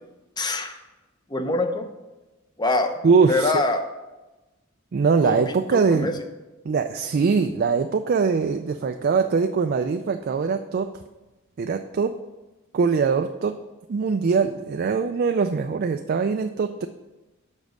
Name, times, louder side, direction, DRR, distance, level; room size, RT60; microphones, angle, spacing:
voice 1, 0.4-0.8 1.3-1.9 2.6-3.0 3.3-3.8 5.2-6.1, left 2 dB, 20° left, 7 dB, 0.7 m, -24 dB
voice 2, 3.0-3.5 4.9-6.1 6.6-10.9 11.6-12.1 12.7-13.6 13.9-16.9, right 5 dB, 50° right, 6 dB, 0.4 m, -22 dB
7.0 x 5.3 x 6.2 m, 1.1 s
head